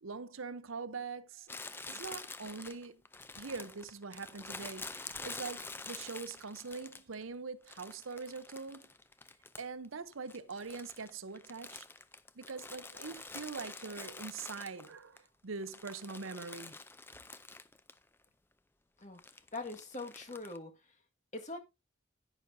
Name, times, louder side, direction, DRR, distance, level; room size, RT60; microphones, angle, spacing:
voice 1, 0.0-1.5 1.9-3.0 3.4-8.9 9.6-11.9 12.4-16.8, right 4 dB, 80° right, 0.8 m, -43 dB
Crumpling crinkling, 1.5-7.2 7.7-9.9 10.1-15.2 15.6-18.0 18.2-18.3 19.2-20.6, left 3 dB, 10° left, 0.4 m, -47 dB
voice 2, 19.5-20.7 21.3-21.6, left 2 dB, 35° left, 1.8 m, -42 dB
11.0 x 9.9 x 2.7 m
head